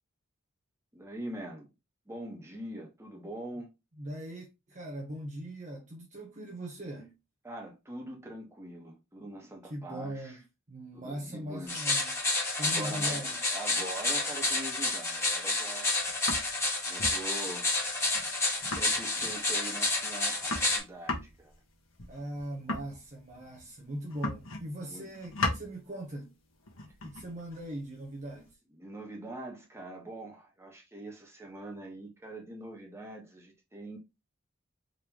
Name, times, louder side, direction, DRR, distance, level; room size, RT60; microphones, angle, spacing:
voice 1, 0.9-1.7 2.1-3.7 7.4-10.4 10.9-11.7 12.6-13.2 13.5-16.0 16.8-17.8 18.7-21.5 24.8-25.1 28.8-34.0, right 1 dB, 15° right, 1.2 m, -43 dB
voice 2, 3.9-7.1 9.6-10.4 10.7-13.4 22.1-26.3 27.0-28.5, equal, 35° right, 0.8 m, -40 dB
sound 1, 11.7-20.8, left 2 dB, 15° left, 1.3 m, -30 dB
sound 2, 15.9-16.6 17.0-17.2 17.5-17.6 17.9-18.0 18.1-18.3 18.6-19.5 19.9-20.0 20.2-23.7 24.1-24.8 25.1-25.7 26.6-28.5, left 2 dB, 70° left, 1.2 m, -37 dB
3.8 x 3.3 x 2.9 m
head